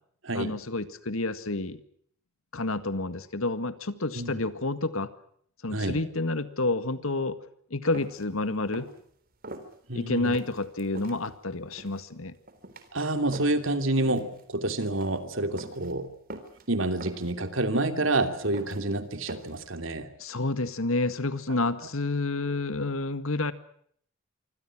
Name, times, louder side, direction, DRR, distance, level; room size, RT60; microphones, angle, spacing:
voice 1, 0.4-1.8 2.5-5.1 5.6-7.4 7.7-8.9 9.9-12.4 20.2-23.5, left 2 dB, 80° left, 12 dB, 1.9 m, -29 dB
voice 2, 5.7-6.0 9.9-10.2 12.9-16.1 16.7-20.1, right 2 dB, 65° right, 8 dB, 3.0 m, -28 dB
sound 1, 7.9-8.2 8.7-9.0 9.4-9.7 10.2-11.2 11.7-12.0 12.5-12.9 13.3-13.7 14.1-14.4 14.7-15.1 15.6-15.9 16.3-16.7 17.0-17.3 17.8-18.2 18.5-18.8 19.3-19.6, right 2 dB, 45° right, 3.7 m, -42 dB
26.0 x 25.0 x 6.1 m, 0.64 s
head